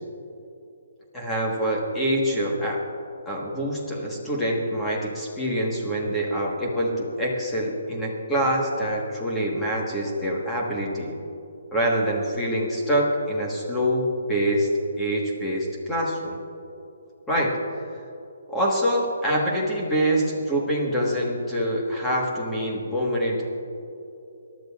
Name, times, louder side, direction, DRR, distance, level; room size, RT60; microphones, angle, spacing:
voice 1, 1.1-2.8 3.2-11.1 11.7-14.7 15.0-16.4 17.3-17.6 18.5-23.5, equal, 5° left, -3 dB, 1.3 m, -25 dB
27.5 x 12.0 x 2.4 m, 2.8 s
hypercardioid pair, 180°, 0 cm